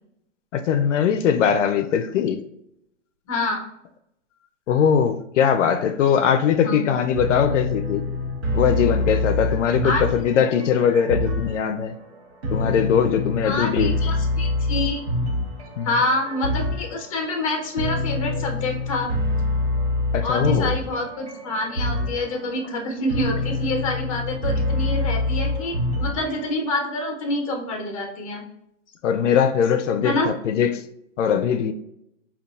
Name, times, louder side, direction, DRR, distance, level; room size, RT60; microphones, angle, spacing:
voice 1, 0.5-2.4 4.7-8.0 8.5-12.0 12.5-14.0 15.8-15.9 20.1-20.8 29.0-30.8 31.2-31.7, left 7 dB, 75° left, 0.5 m, -21 dB
voice 2, 3.3-3.6 6.6-6.8 9.8-10.0 13.4-15.0 15.8-19.1 20.2-28.4 30.0-30.3, left 2 dB, 30° left, 0.6 m, -27 dB
sound 1, 7.1-26.5, left 2 dB, 60° right, 1.1 m, -26 dB
5.2 x 2.4 x 2.3 m
hypercardioid pair, 175°, 37 cm